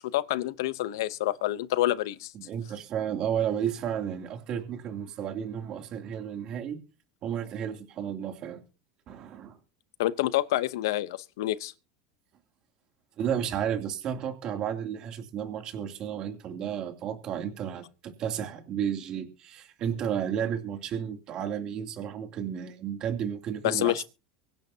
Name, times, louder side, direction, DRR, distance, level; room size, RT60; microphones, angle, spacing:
voice 1, 0.1-2.3 10.0-11.7 23.6-24.0, left 15 dB, 80° left, 0.8 m, -27 dB
voice 2, 2.3-6.8 7.2-8.6 9.1-9.6 13.2-24.0, right 9 dB, 35° right, 2.8 m, -32 dB
24.0 x 10.5 x 2.8 m
supercardioid pair, 155°, 2 cm